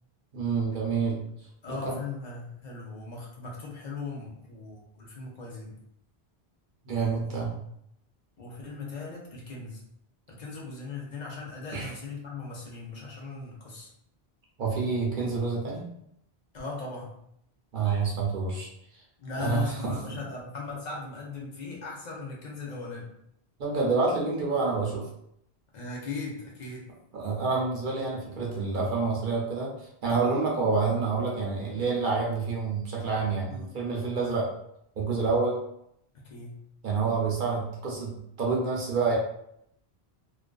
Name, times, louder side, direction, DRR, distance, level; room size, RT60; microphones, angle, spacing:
voice 1, 0.3-1.2 1.7-1.9 6.8-7.6 11.7-11.9 14.6-15.9 17.7-19.0 19.4-20.2 23.6-25.1 27.1-34.5 35.0-35.6 36.8-39.2, right 4 dB, 60° right, -3 dB, 0.7 m, -28 dB
voice 2, 1.6-5.8 7.2-7.3 8.4-9.8 10.3-13.9 16.5-17.1 19.2-23.1 25.7-26.9 33.5-33.8 34.2-34.3 36.1-36.6, left 4 dB, 50° left, -2 dB, 0.7 m, -38 dB
2.4 x 2.3 x 2.2 m, 0.74 s
omnidirectional pair, 1.1 m